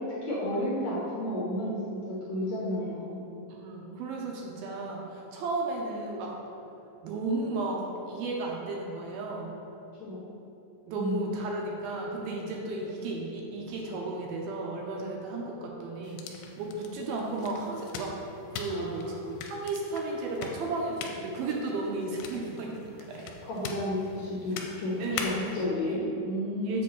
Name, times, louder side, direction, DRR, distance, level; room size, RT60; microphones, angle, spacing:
voice 1, 0.2-3.3 10.0-10.3 10.9-11.3 18.7-19.1 23.4-26.8, left 1 dB, 65° left, -8 dB, 1.9 m, -32 dB
voice 2, 3.5-6.3 7.0-9.6 10.9-18.2 18.5-19.2 19.5-23.3 25.0-25.3 25.8-26.0 26.6-26.8, right 2 dB, 75° right, -1 dB, 2.5 m, -34 dB
sound 1, 16.0-25.6, left 5 dB, 80° left, 2.5 m, -42 dB
7.6 x 6.5 x 3.9 m, 2.7 s
omnidirectional pair, 4.8 m